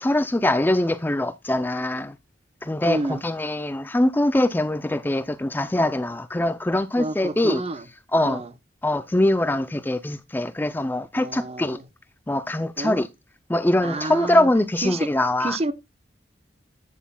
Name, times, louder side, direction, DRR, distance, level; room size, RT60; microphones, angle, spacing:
voice 1, 0.0-2.2 2.6-7.6 8.1-8.4 8.8-11.8 12.3-13.1 13.5-15.6, left 1 dB, 10° left, 0.4 m, -23 dB
voice 2, 2.8-3.2 7.0-7.8 8.2-8.5 11.1-11.8 12.8-13.0 13.8-14.5 14.8-15.1 15.4-15.7, right 2 dB, 35° right, 0.8 m, -29 dB
11.0 x 9.2 x 2.2 m
head